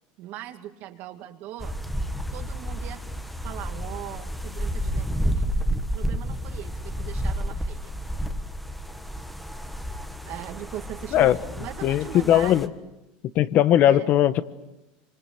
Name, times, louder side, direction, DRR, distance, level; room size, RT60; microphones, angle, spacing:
voice 1, 0.2-1.8 2.3-3.1 3.4-5.5 5.9-8.0 10.2-12.7 13.9-14.1, right 13 dB, 55° right, 6 dB, 2.5 m, -40 dB
sound 1, 1.6-12.7, equal, 5° left, 1.5 m, -31 dB
voice 2, 11.8-12.7 13.3-14.4, left 12 dB, 45° left, 13 dB, 1.2 m, -19 dB
28.0 x 25.5 x 7.8 m, 0.99 s
supercardioid pair, 140°, 4 cm